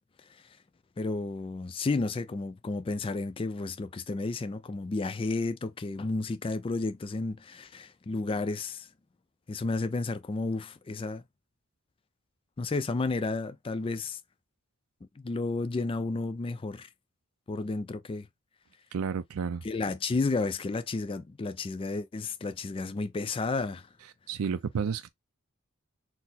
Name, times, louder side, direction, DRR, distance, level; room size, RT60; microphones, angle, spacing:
voice 1, 1.0-8.9 9.5-11.2 12.6-14.2 15.2-16.9 17.5-18.3 19.6-23.9, left 3 dB, 25° left, 0.3 m, -32 dB
voice 2, 18.9-19.7 24.3-25.1, right 6 dB, 80° right, 0.4 m, -31 dB
4.3 x 2.0 x 4.1 m
head